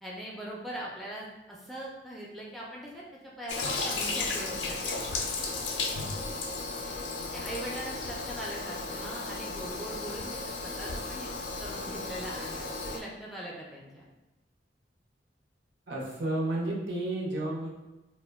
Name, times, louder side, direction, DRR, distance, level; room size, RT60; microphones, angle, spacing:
voice 1, 0.0-3.0 3.4-5.0 7.3-11.3 11.6-14.0, right 1 dB, ahead, -5 dB, 0.4 m, -41 dB
Toilet flush, 3.5-13.0, left 3 dB, 80° left, 0.4 m, -34 dB
voice 2, 15.9-17.7, right 1 dB, 65° right, -3 dB, 0.6 m, -31 dB
2.2 x 2.1 x 3.3 m, 1.1 s
head